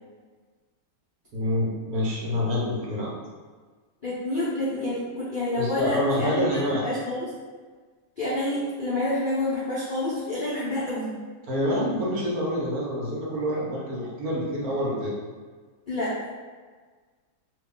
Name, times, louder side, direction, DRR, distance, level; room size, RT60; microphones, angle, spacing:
voice 1, 1.3-3.1 5.6-6.9 11.4-15.1, left 1 dB, 60° right, -5 dB, 1.1 m, -27 dB
voice 2, 4.0-7.3 8.2-11.1 15.9-16.1, left 1 dB, 80° left, -10 dB, 0.4 m, -28 dB
2.9 x 2.3 x 3.7 m, 1.5 s
omnidirectional pair, 2.0 m